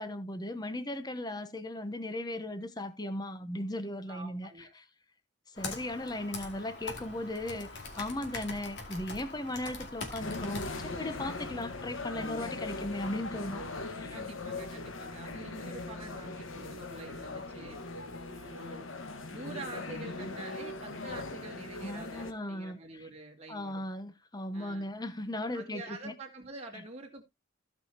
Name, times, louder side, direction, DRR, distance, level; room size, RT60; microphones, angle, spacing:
voice 1, 0.0-4.8 5.5-13.6 13.9-14.1 21.8-23.1 23.5-26.1 26.7-26.8, left 1 dB, 20° left, 0.8 m, -37 dB
voice 2, 4.1-4.7 14.1-17.8 18.3-18.9 19.3-23.8 24.5-24.9 25.5-27.2, right 2 dB, 35° right, 2.3 m, -46 dB
Computer keyboard, 5.6-11.5, left 3 dB, 60° left, 2.4 m, -43 dB
sound 1, 10.2-22.3, left 3 dB, 90° left, 1.4 m, -40 dB
16.0 x 5.6 x 2.8 m
head